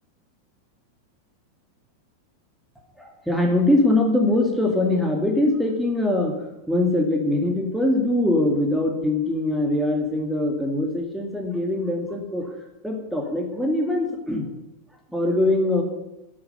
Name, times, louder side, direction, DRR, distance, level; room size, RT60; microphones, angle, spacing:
voice 1, 3.0-6.4 6.7-12.5 12.8-14.5 15.1-15.8, left 1 dB, ahead, 1 dB, 2.3 m, -22 dB
12.0 x 8.8 x 6.8 m, 0.98 s
figure-of-eight pair, 90°, 0 cm